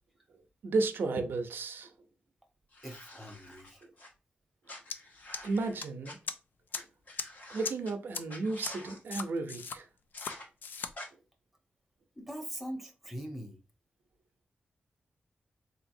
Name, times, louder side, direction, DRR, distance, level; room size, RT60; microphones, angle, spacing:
voice 1, 0.6-1.9 3.8-3.9 5.4-6.2 7.5-9.9, right 3 dB, 90° right, 0.7 m, -33 dB
sound 1, 2.7-4.1 4.7-6.1 6.7-6.8 7.1-7.9 8.3-9.0 10.1-10.4 10.9-11.1, left 1 dB, 50° left, 1.0 m, -48 dB
voice 2, 2.8-3.8 12.1-13.6, equal, ahead, 0.9 m, -42 dB
sound 2, 4.9-5.0 5.3-5.8 6.3-6.4 6.7-6.8 7.2-7.3 7.6-7.7 8.1-8.2 8.6-8.7 9.1-9.8 10.2-10.3 10.6-10.9, left 5 dB, 65° left, 0.4 m, -37 dB
4.0 x 2.9 x 2.6 m
wide cardioid pair, 155°, 3 cm